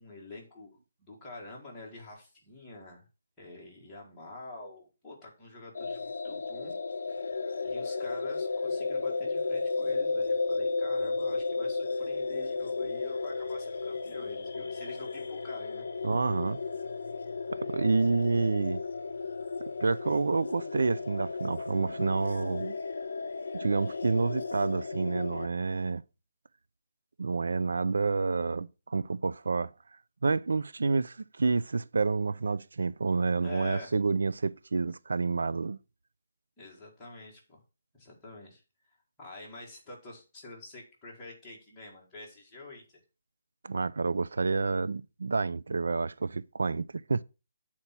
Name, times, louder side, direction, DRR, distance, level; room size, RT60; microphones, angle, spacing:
voice 1, 0.0-3.1 3.4-6.7 7.6-15.9 33.4-33.9 36.6-37.6 37.9-38.6 39.2-43.0, left 2 dB, 5° left, 1.8 m, -47 dB
sound 1, 5.7-25.5, left 4 dB, 60° left, 0.7 m, -34 dB
voice 2, 16.0-16.6 17.5-18.8 19.8-22.8 23.5-26.0 27.2-29.7 30.2-35.8 43.6-47.2, right 4 dB, 80° right, 0.3 m, -29 dB
8.3 x 4.3 x 5.8 m
hypercardioid pair, 180°, 0 cm